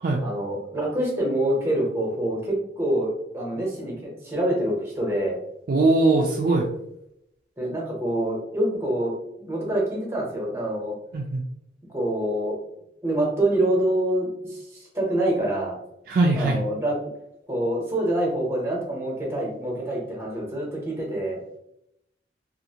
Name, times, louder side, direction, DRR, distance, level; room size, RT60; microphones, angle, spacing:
voice 1, 0.2-5.4 7.6-9.1 9.4-11.0 11.9-12.6 13.0-15.8 16.3-16.9 17.5-21.4, right 1 dB, 15° right, -3 dB, 0.8 m, -26 dB
voice 2, 5.7-6.7 11.1-11.4 16.1-16.6, right 2 dB, 50° right, 0 dB, 0.3 m, -21 dB
2.6 x 2.4 x 2.8 m, 0.81 s
head